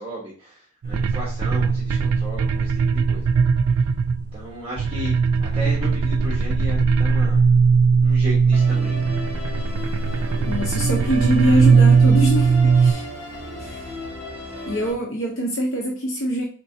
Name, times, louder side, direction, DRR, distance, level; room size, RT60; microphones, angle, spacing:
voice 1, 0.0-3.3 4.3-7.4 8.0-9.0, equal, 25° right, -7 dB, 1.2 m, -35 dB
sound 1, 0.8-4.5 4.8-12.9, right 5 dB, 90° right, 0.4 m, -19 dB
Musical instrument, 8.5-14.9, equal, 10° left, 2.1 m, -34 dB
voice 2, 10.5-13.1 13.6-13.9 14.7-16.5, equal, 65° left, 0 dB, 0.8 m, -24 dB
4.4 x 4.3 x 2.8 m, 0.43 s
head